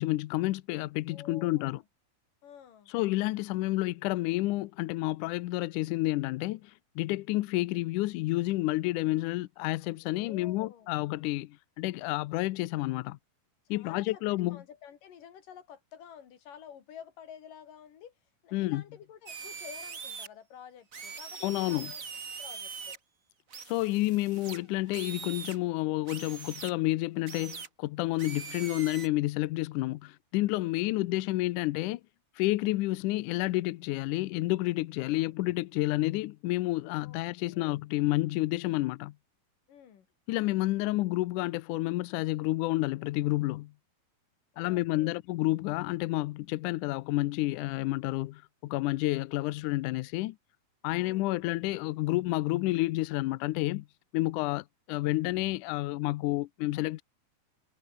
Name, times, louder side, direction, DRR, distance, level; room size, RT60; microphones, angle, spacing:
voice 1, 0.0-1.8 2.9-13.2 13.7-14.6 18.5-18.8 21.4-21.9 23.7-32.0 32.4-39.1 40.3-43.7 44.6-50.4 50.8-53.9 54.1-57.0, left 18 dB, 90° left, 1.8 m, -30 dB
voice 2, 1.1-1.8 2.4-2.9 10.0-10.9 13.7-14.2 14.5-18.1 18.4-22.0 22.4-23.0 30.7-31.1 35.1-35.3 36.9-37.8 39.7-40.1 44.5-45.2 50.9-51.4, left 8 dB, 60° left, 4.0 m, -50 dB
sound 1, 19.3-20.3 20.9-23.0 23.5-25.6 26.1-26.7 27.3-27.7 28.2-29.1, right 5 dB, 60° right, 0.8 m, -42 dB
omnidirectional pair, 4.5 m